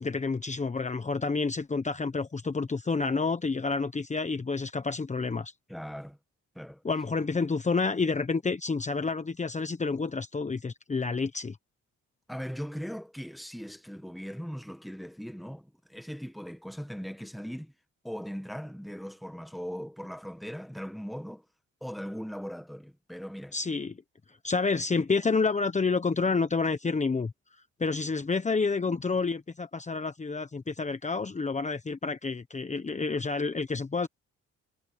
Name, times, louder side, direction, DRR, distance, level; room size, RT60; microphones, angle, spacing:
voice 1, 0.0-5.5 6.8-11.6 23.5-24.0 24.4-27.3 27.8-34.1, left 4 dB, 25° left, 1.2 m, -29 dB
voice 2, 5.7-6.2 6.5-6.8 12.3-17.7 18.0-21.4 21.8-23.6, equal, ahead, 1.7 m, -39 dB
cardioid pair, 90°, 30 cm